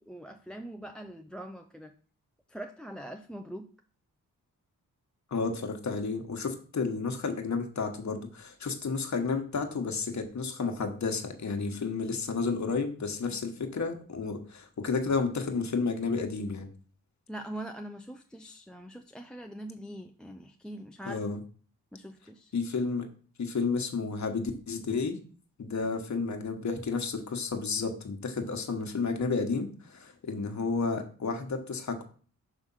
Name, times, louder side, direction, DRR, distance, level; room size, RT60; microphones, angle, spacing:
voice 1, 0.0-1.9 2.5-3.7 13.3-13.5 17.3-21.2 21.9-22.5, right 1 dB, ahead, 6 dB, 0.5 m, -43 dB
voice 2, 5.3-16.7 21.1-21.4 22.5-23.1 23.4-25.2 25.6-32.0, left 4 dB, 55° left, 4 dB, 1.3 m, -31 dB
6.3 x 3.5 x 5.6 m, 0.42 s
cardioid pair, 65°, 35 cm